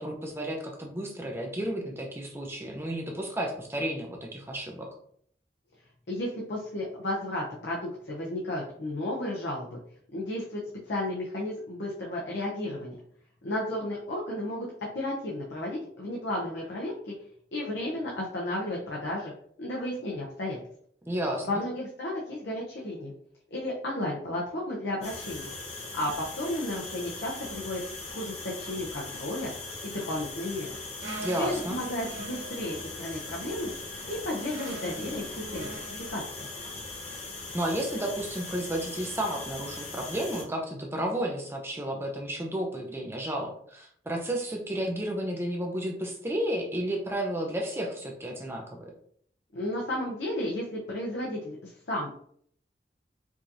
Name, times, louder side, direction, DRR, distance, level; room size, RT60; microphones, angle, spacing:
voice 1, 0.0-4.9 21.0-21.5 31.2-31.8 37.5-48.9, right 1 dB, 15° right, 1 dB, 0.6 m, -32 dB
voice 2, 6.1-9.8 10.1-13.0 13.4-14.7 14.9-16.9 17.5-19.3 19.6-20.6 21.5-23.1 23.5-25.5 25.9-27.8 28.1-29.5 29.8-30.7 31.4-33.7 34.1-36.5 49.5-52.2, left 1 dB, 85° left, -4 dB, 0.8 m, -33 dB
sound 1, 25.0-40.4, left 3 dB, 35° left, 0.8 m, -40 dB
sound 2, 31.0-36.2, right 2 dB, 85° right, 0.9 m, -43 dB
4.7 x 2.8 x 2.6 m, 0.63 s
head